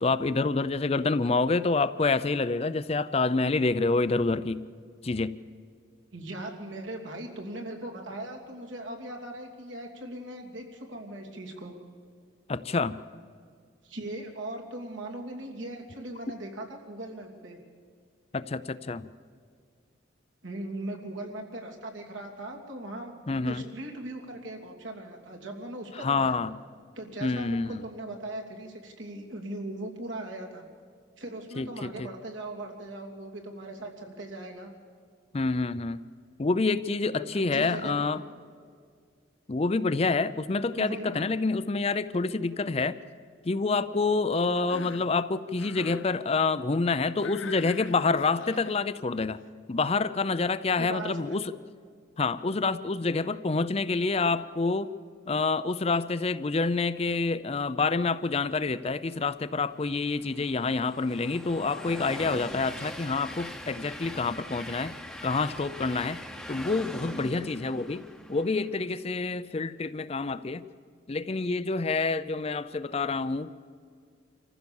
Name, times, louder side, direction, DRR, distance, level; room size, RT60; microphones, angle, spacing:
voice 1, 0.0-4.6 5.0-5.4 12.5-13.0 18.3-19.1 23.3-23.6 25.9-26.5 27.2-27.8 31.6-32.1 35.3-36.0 36.4-38.2 39.5-43.0 43.4-49.4 49.7-51.5 52.2-54.9 55.3-64.9 65.2-66.2 66.5-68.0 68.3-70.6 71.1-73.5, left 3 dB, 30° left, 14 dB, 0.5 m, -27 dB
voice 2, 6.1-11.7 13.8-17.6 20.4-26.4 26.9-30.6 31.2-34.7 37.1-37.9 40.7-41.3 50.8-51.4, right 1 dB, 75° right, 1 dB, 2.9 m, -39 dB
Cough, 44.5-45.1 45.5-46.1 47.2-48.8, left 5 dB, 75° left, 0.8 m, -43 dB
Train, 59.4-68.8, equal, 5° left, 0.9 m, -42 dB
26.0 x 15.0 x 7.1 m, 2.1 s
head